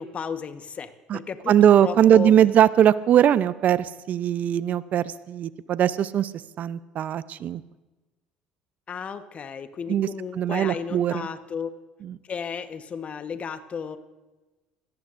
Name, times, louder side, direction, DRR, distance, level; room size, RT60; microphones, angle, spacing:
voice 1, 0.0-2.3 8.9-11.7 12.2-14.0, left 6 dB, 40° left, 9 dB, 1.3 m, -34 dB
voice 2, 1.5-6.3 6.6-7.6 9.9-10.1 10.3-11.3 12.0-12.2, right 10 dB, 55° right, 16 dB, 0.7 m, -20 dB
25.5 x 17.5 x 2.6 m, 1.2 s
hypercardioid pair, 65°, 3 cm